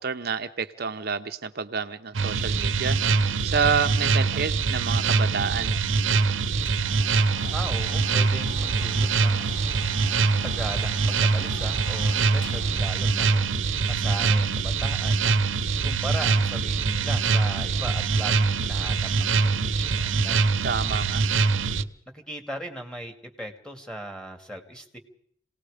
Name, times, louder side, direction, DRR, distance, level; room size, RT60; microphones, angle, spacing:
voice 1, 0.0-5.7 20.6-21.2, right 6 dB, 50° right, 7 dB, 0.8 m, -29 dB
sound 1, 2.1-21.8, right 4 dB, 75° right, 0.9 m, -24 dB
Domestic sounds home sounds, 6.6-13.3, left 1 dB, 60° left, 7.8 m, -43 dB
voice 2, 7.5-9.6 10.4-20.5 21.7-21.9 22.1-25.0, right 1 dB, 5° left, 4 dB, 2.4 m, -38 dB
28.0 x 18.5 x 5.0 m, 0.66 s
head